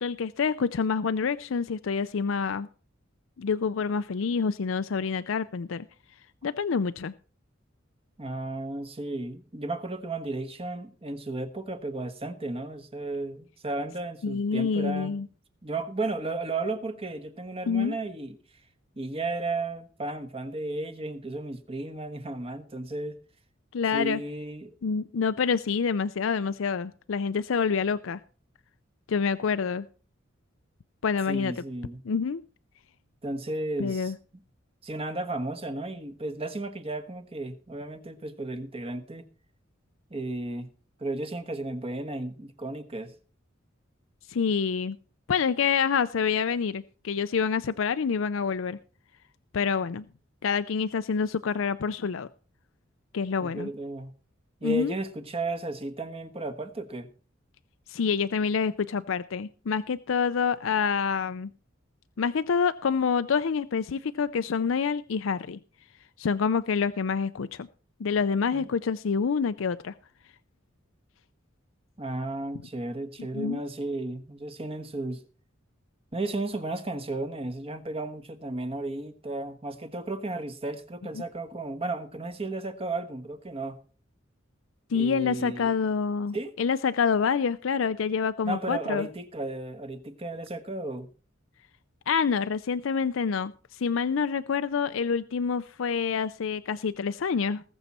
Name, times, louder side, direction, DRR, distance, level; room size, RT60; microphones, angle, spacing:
voice 1, 0.0-2.7 3.4-5.8 6.4-7.1 14.2-15.3 17.7-18.0 23.7-24.2 24.8-28.2 29.1-29.9 31.0-31.5 32.1-32.4 33.8-34.1 44.3-45.0 45.3-48.8 49.5-50.0 50.4-52.3 53.1-53.7 54.6-54.9 57.9-61.5 62.2-65.6 66.2-67.7 68.0-69.9 73.3-73.6 81.2-81.3 84.9-89.1 92.1-97.6, left 6 dB, 75° left, 12 dB, 0.5 m, -27 dB
voice 2, 8.2-15.1 15.6-18.4 19.0-23.2 23.9-24.7 31.3-32.0 33.2-34.1 34.8-39.3 40.1-40.7 41.0-43.1 53.4-54.1 54.6-57.1 68.5-68.7 72.0-75.2 76.1-83.8 84.9-85.7 86.3-86.5 88.4-91.1, right 2 dB, 30° right, 9 dB, 1.3 m, -34 dB
19.5 x 7.1 x 4.3 m, 0.39 s
head